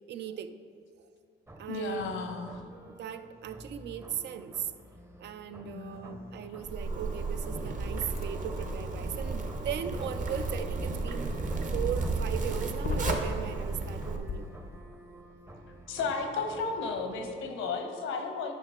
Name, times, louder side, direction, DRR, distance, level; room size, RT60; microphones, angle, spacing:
voice 1, 0.1-0.5 1.6-2.0 2.3-2.6 2.9-4.7 5.2-11.3 11.7-14.5, right 9 dB, 60° right, 11 dB, 0.4 m, -38 dB
sound 1, 1.5-17.5, right 1 dB, 15° right, 0.6 m, -50 dB
voice 2, 1.7-2.6 5.6-6.2 15.9-18.5, left 4 dB, 80° left, 5 dB, 0.9 m, -34 dB
Zipper (clothing), 6.6-14.2, right 3 dB, 40° right, 0.8 m, -33 dB
sound 2, 8.2-8.3 9.8-14.8, left 5 dB, 50° left, 0.5 m, -40 dB
9.3 x 5.7 x 3.6 m, 2.3 s
cardioid pair, 90°, 20 cm